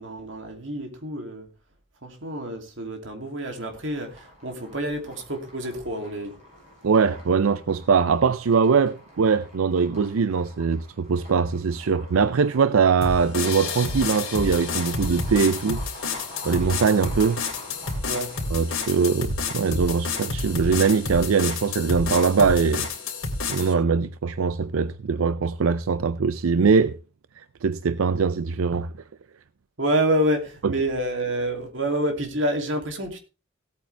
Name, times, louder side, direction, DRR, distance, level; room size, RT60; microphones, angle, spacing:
voice 1, 0.0-1.5 2.0-6.3 18.1-18.3 29.8-33.2, right 1 dB, 65° right, 2.8 m, -28 dB
sound 1, 3.4-19.0, equal, 35° right, 7.5 m, -46 dB
voice 2, 6.8-15.8 16.4-17.4 18.5-22.9 23.5-27.0 27.4-28.9, right 5 dB, 90° right, 0.5 m, -22 dB
sound 2, 13.0-23.7, left 4 dB, 70° left, 3.2 m, -30 dB
17.0 x 8.7 x 3.4 m
head